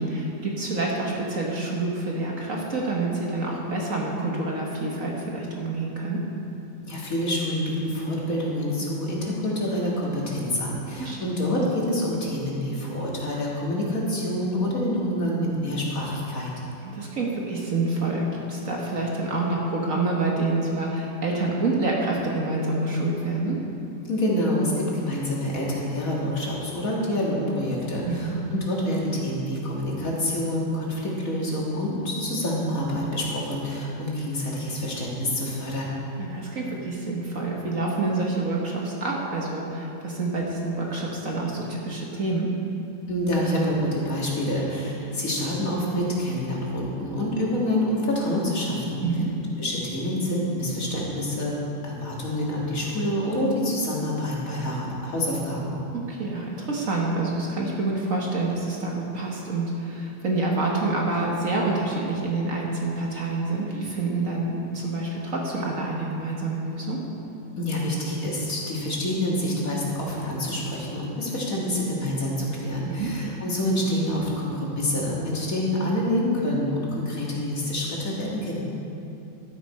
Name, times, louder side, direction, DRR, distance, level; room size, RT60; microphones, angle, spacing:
voice 1, 0.0-6.2 11.0-11.2 16.8-23.6 28.0-28.4 36.2-42.5 49.0-49.3 55.9-67.0 72.8-73.1, right 2 dB, 50° right, -2 dB, 1.5 m, -27 dB
voice 2, 6.8-16.5 24.1-35.9 43.1-49.0 49.6-51.5 51.8-55.8 67.6-78.6, left 1 dB, 50° left, -4 dB, 2.3 m, -27 dB
12.5 x 9.9 x 4.3 m, 2.8 s
omnidirectional pair, 1.9 m